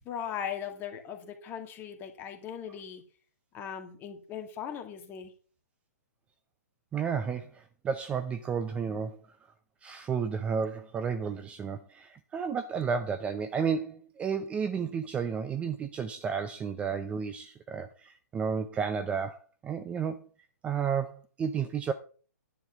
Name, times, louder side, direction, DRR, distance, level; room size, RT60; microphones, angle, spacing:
voice 1, 0.0-3.0 3.5-5.3, left 8 dB, 20° left, 5 dB, 2.1 m, -39 dB
voice 2, 6.9-9.2 9.8-19.4 19.6-20.3 20.6-21.9, right 6 dB, 10° right, 10 dB, 0.6 m, -32 dB
10.5 x 5.5 x 7.3 m, 0.40 s
hypercardioid pair, 140°, 9 cm